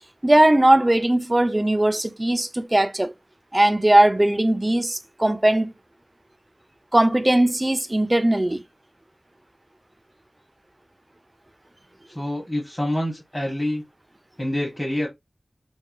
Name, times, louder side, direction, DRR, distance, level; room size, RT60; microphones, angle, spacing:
voice 1, 0.2-3.1 3.5-5.7 6.9-8.6, right 1 dB, 20° right, 0.3 m, -19 dB
voice 2, 12.1-13.8 14.4-15.1, left 1 dB, 15° left, 1.0 m, -26 dB
2.9 x 2.1 x 2.4 m
wide cardioid pair, 80°, 0 cm